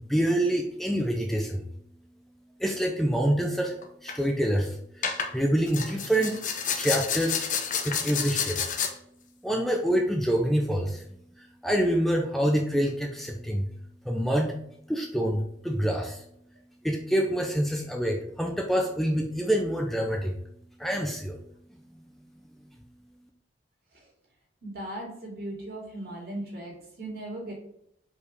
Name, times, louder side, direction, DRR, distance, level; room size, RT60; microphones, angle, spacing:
voice 1, 0.0-1.7 2.6-3.8 4.0-6.4 6.7-7.5 7.8-8.6 9.4-11.1 11.4-13.7 14.0-14.5 14.9-16.2 16.8-20.4 20.8-21.4 22.6-22.7, equal, ahead, 1 dB, 0.6 m, -26 dB
sound 1, 3.8-4.1 5.0-5.3 5.7-8.9, left 7 dB, 45° left, 0.8 m, -29 dB
voice 2, 24.6-27.5, right 1 dB, 55° right, -2 dB, 2.5 m, -38 dB
4.9 x 4.8 x 4.8 m, 0.73 s
head